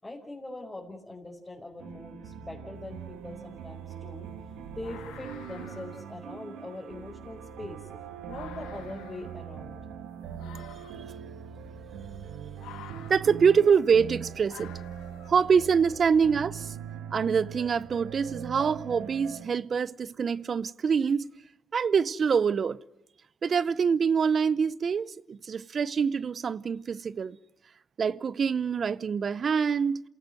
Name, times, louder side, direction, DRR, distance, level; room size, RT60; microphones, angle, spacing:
voice 1, 0.0-4.3 4.7-7.8 8.3-9.8 10.4-10.6, left 2 dB, 20° left, 5.0 m, -42 dB
sound 1, 1.8-19.5, right 8 dB, 85° right, 1.9 m, -41 dB
sound 2, 2.7-2.9 3.3-15.8, left 11 dB, 90° left, 1.3 m, -52 dB
voice 2, 13.1-14.7 15.3-16.7 17.1-21.3 21.7-22.8 23.4-27.4 28.0-30.0, right 6 dB, 50° right, 0.7 m, -25 dB
27.5 x 17.5 x 7.9 m
supercardioid pair, 65°, 0 cm